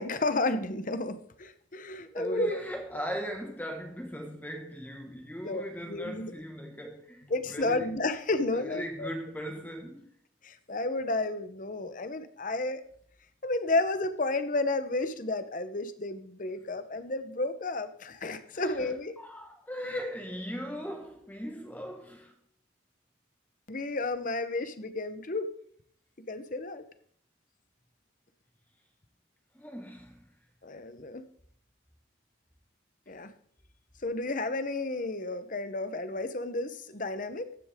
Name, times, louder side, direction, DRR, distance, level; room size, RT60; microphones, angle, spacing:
voice 1, 0.0-2.5 5.4-6.3 7.3-9.1 10.4-12.8 13.4-19.2 23.7-25.5 26.3-26.8 30.6-31.2 33.1-33.3 34.0-37.5, left 2 dB, 40° left, 0.9 m, -32 dB
voice 2, 2.0-7.9 8.5-10.1 16.6-16.7 18.5-18.9 19.2-22.3 29.5-30.3, equal, 10° left, 1.6 m, -38 dB
15.0 x 9.9 x 3.7 m
head